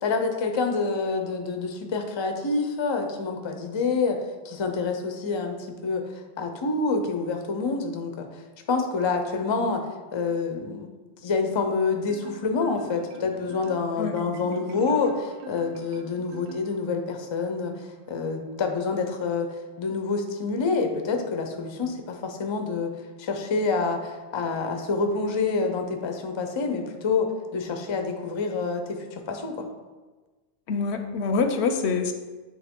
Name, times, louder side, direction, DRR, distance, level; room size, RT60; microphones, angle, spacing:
voice 1, 0.0-4.2 4.4-5.6 5.8-8.4 8.7-9.8 10.1-10.9 11.2-22.9 23.2-29.7, left 4 dB, 35° left, 5 dB, 0.4 m, -27 dB
Marimba xylophone, 12.1-17.2, right 5 dB, 75° right, 0.9 m, -42 dB
voice 2, 30.7-32.1, left 4 dB, 75° left, 7 dB, 0.8 m, -25 dB
8.4 x 3.1 x 3.6 m, 1.3 s
omnidirectional pair, 1.2 m